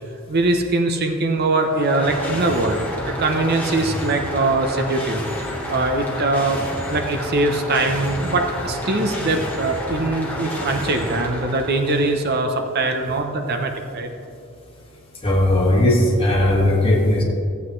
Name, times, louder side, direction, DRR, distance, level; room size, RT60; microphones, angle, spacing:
voice 1, 0.3-2.8 3.1-5.2 5.7-6.6 6.9-14.1, right 2 dB, 50° right, 5 dB, 0.7 m, -22 dB
sound 1, 1.5-12.3, left 1 dB, 10° left, 1.3 m, -29 dB
voice 2, 15.2-17.2, left 1 dB, 25° left, -3 dB, 1.8 m, -17 dB
15.0 x 8.1 x 3.2 m, 2.6 s
head